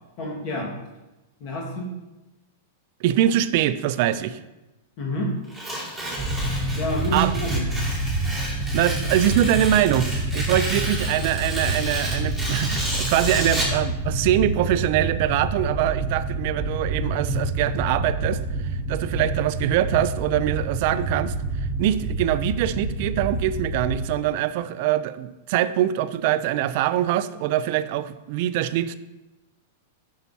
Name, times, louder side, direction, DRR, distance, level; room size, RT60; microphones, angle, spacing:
voice 1, 0.2-0.8 1.4-1.9 5.0-5.4 6.8-7.7, equal, 50° left, 0 dB, 1.7 m, -28 dB
voice 2, 3.0-4.4 7.1-7.3 8.7-18.4 18.9-21.3 21.8-29.0, right 12 dB, 55° right, 14 dB, 0.4 m, -23 dB
Tearing, 5.5-13.8, right 1 dB, 5° left, 2.1 m, -31 dB
sound 1, 6.2-24.1, right 2 dB, 20° right, 1.2 m, -28 dB
8.0 x 5.7 x 2.8 m, 1.1 s
hypercardioid pair, 135°, 0 cm